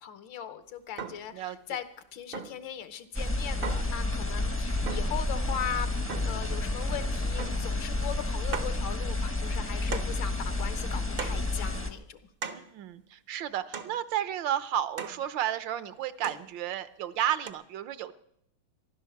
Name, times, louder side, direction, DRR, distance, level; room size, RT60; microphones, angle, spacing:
voice 1, 0.0-1.8 2.1-5.9 6.2-12.2, left 9 dB, 75° left, 12 dB, 1.7 m, -39 dB
sound 1, 1.0-1.3 2.3-2.7 3.6-4.0 4.9-5.2 6.1-6.5 7.4-7.7 8.0-8.1 8.5-8.8 9.9-10.2 11.2-11.5 12.4-12.7 13.7-14.0 15.0-15.3 16.2-16.5 17.5-17.6, right 6 dB, 50° right, 0.6 m, -38 dB
voice 2, 1.3-1.8 12.5-18.1, right 10 dB, 70° right, 14 dB, 1.4 m, -32 dB
sound 2, 3.1-11.9, left 2 dB, 10° left, 0.6 m, -30 dB
15.0 x 11.5 x 7.1 m, 0.75 s
omnidirectional pair, 2.2 m